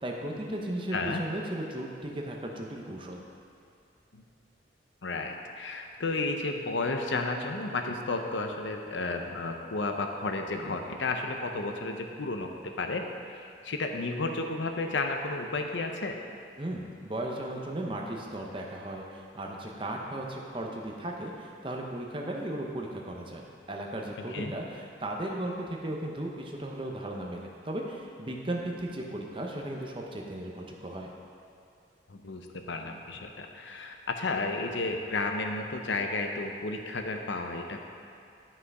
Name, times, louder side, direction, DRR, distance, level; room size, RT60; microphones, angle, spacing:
voice 1, 0.0-3.2 16.6-23.4 23.7-31.1, right 1 dB, 30° right, 0 dB, 0.8 m, -36 dB
voice 2, 0.9-1.2 4.1-4.2 5.0-16.2 24.3-24.5 32.1-37.9, left 3 dB, 80° left, 4 dB, 0.7 m, -32 dB
10.5 x 5.6 x 4.8 m, 2.4 s
head